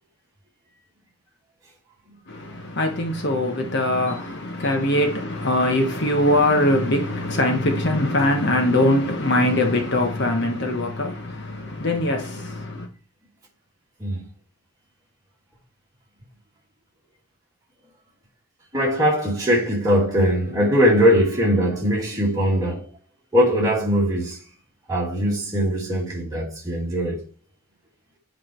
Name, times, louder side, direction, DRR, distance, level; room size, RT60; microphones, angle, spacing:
voice 1, 2.3-12.9, left 1 dB, 50° left, 1.2 m, -22 dB
voice 2, 18.7-22.9 23.3-24.4 24.9-27.2, equal, 15° right, 2.4 m, -21 dB
8.2 x 4.9 x 4.5 m
head